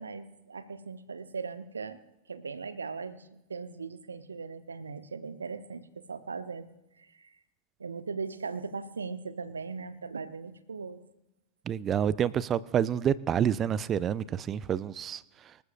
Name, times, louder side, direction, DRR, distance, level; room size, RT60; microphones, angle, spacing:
voice 1, 0.0-6.7 7.0-7.4 7.8-11.0, right 5 dB, 75° right, 14 dB, 0.8 m, -39 dB
voice 2, 11.7-15.2, right 9 dB, 25° right, 20 dB, 0.4 m, -28 dB
24.5 x 14.0 x 2.5 m, 0.92 s
figure-of-eight pair, 90°, 0 cm